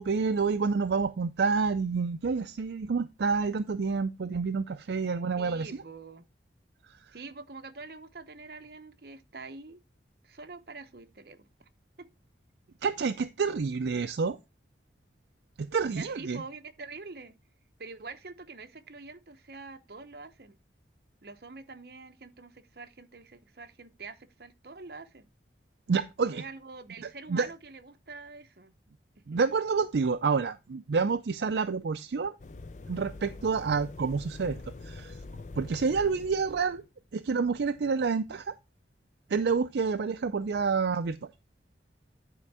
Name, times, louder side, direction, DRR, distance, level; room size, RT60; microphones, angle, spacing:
voice 1, 0.0-5.7 6.9-7.0 12.8-14.4 15.6-16.4 25.9-26.4 27.0-27.5 29.3-32.3 32.9-35.2 35.6-36.8 37.1-38.5 39.3-41.3, right 5 dB, 70° right, 0.4 m, -28 dB
voice 2, 5.3-6.2 7.1-9.8 10.2-11.7 12.0-12.1 15.9-17.4 17.8-20.6 21.2-25.3 26.3-28.7 29.2-29.4 35.9-36.2, right 3 dB, 55° right, 0.8 m, -46 dB
sound 1, 32.4-36.9, left 3 dB, 40° left, 0.5 m, -44 dB
10.0 x 4.4 x 4.7 m
head